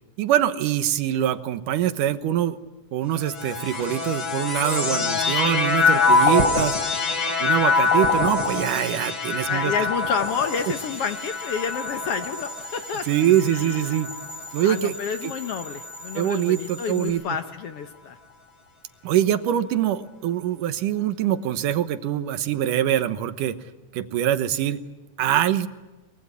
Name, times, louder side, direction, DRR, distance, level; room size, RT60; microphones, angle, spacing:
voice 1, 0.2-2.6 2.9-6.8 7.4-9.7 13.1-14.1 14.5-14.9 15.2-15.3 16.1-17.2 19.0-23.6 23.9-24.8 25.2-25.7, right 11 dB, 85° right, 11 dB, 2.7 m, -24 dB
sound 1, 3.2-14.7 15.4-16.2, left 4 dB, 40° left, 3.7 m, -24 dB
voice 2, 4.8-6.6 9.5-13.1 13.5-13.8 14.6-18.2, left 7 dB, 60° left, 9 dB, 1.7 m, -30 dB
sound 2, 10.2-17.1, equal, 20° left, 3.0 m, -40 dB
23.5 x 22.5 x 9.8 m, 1.1 s
omnidirectional pair, 3.6 m